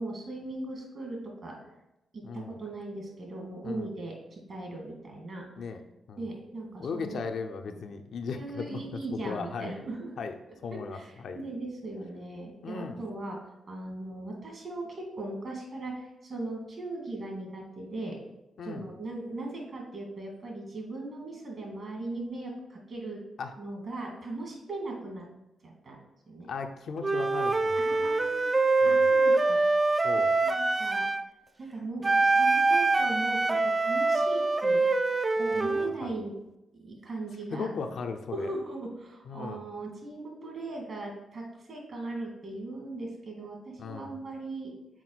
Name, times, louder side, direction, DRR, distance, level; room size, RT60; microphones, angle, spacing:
voice 1, 0.0-1.6 2.1-5.7 6.2-7.2 7.7-7.8 8.3-10.1 10.7-13.4 13.7-18.2 18.6-23.2 23.6-25.3 25.6-26.0 26.3-26.5 27.8-28.6 28.8-29.6 30.4-31.1 31.6-34.9 35.3-36.4 36.7-37.7 38.3-44.7, right 2 dB, 60° right, 0 dB, 2.1 m, -38 dB
voice 2, 2.2-2.6 3.6-3.9 5.6-5.8 6.1-6.3 6.8-9.7 10.2-10.3 10.6-11.4 12.6-13.0 18.6-18.9 23.4-23.5 26.5-28.1 28.8-29.1 30.0-30.4 35.5-36.2 37.5-38.5 39.3-39.6 43.8-44.1, left 5 dB, 70° left, 6 dB, 0.6 m, -37 dB
Wind instrument woodwind instrument, 27.0-31.3 32.0-35.9, right 3 dB, 30° right, 0.4 m, -24 dB
6.1 x 4.3 x 4.1 m, 0.93 s
cardioid pair, 60°, 0 cm